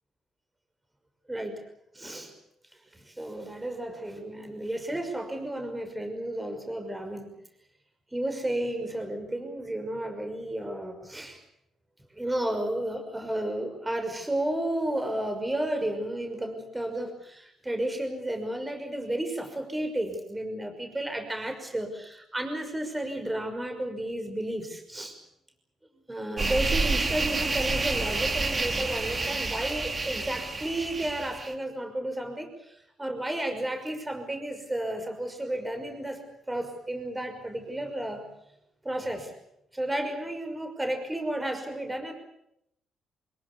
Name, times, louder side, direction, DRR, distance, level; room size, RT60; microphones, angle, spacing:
voice 1, 1.3-1.6 1.9-2.3 2.9-7.3 8.1-11.4 12.1-25.2 26.1-36.2 36.5-38.2 38.8-39.3 39.7-42.1, right 1 dB, 15° right, 6 dB, 5.9 m, -32 dB
sound 1, 26.4-31.5, right 3 dB, 30° right, 3.0 m, -29 dB
25.5 x 21.0 x 8.4 m, 0.77 s
cardioid pair, 90°, 0 cm